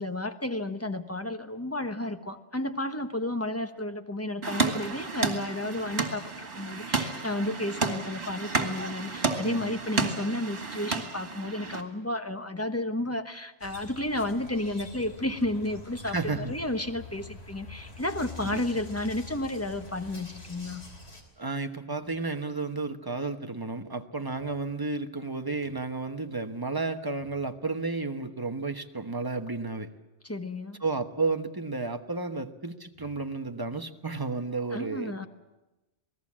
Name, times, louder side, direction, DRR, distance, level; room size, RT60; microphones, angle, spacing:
voice 1, 0.0-20.8 30.2-30.8 34.7-35.3, left 1 dB, 15° left, 7 dB, 1.1 m, -32 dB
sound 1, 4.4-11.8, right 4 dB, 65° right, 2.4 m, -31 dB
voice 2, 9.4-9.7 16.1-16.5 18.4-18.6 21.4-30.0 30.8-35.3, right 3 dB, 20° right, 6 dB, 1.1 m, -32 dB
sound 2, 13.6-21.2, left 2 dB, 60° left, 3.6 m, -45 dB
27.5 x 19.0 x 7.5 m, 1.1 s
omnidirectional pair, 1.2 m